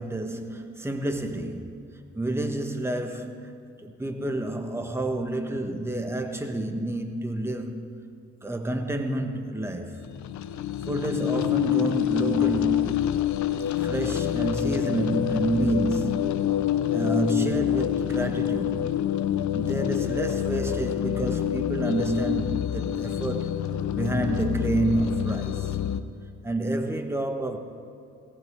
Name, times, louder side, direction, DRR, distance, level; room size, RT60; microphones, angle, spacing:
voice 1, 0.0-8.0 8.4-10.1 10.9-13.0 13.8-16.4 16.9-18.9 19.5-25.8 26.4-27.6, right 1 dB, 10° right, 1.2 m, -29 dB
sound 1, 10.0-26.0, left 11 dB, 70° left, 0.8 m, -27 dB
18.0 x 18.0 x 3.6 m
cardioid pair, 90°, 30 cm